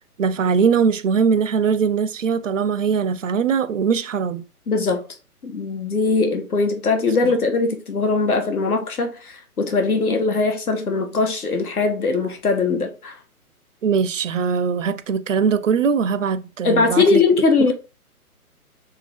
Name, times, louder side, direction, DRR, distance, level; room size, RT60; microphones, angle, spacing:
voice 1, 0.2-4.4 7.2-7.3 13.8-17.2, right 6 dB, 55° right, 0.5 m, -21 dB
voice 2, 4.7-5.0 5.4-13.1 16.6-17.7, left 4 dB, 75° left, 1.1 m, -20 dB
3.7 x 2.8 x 3.3 m
figure-of-eight pair, 135°, 45 cm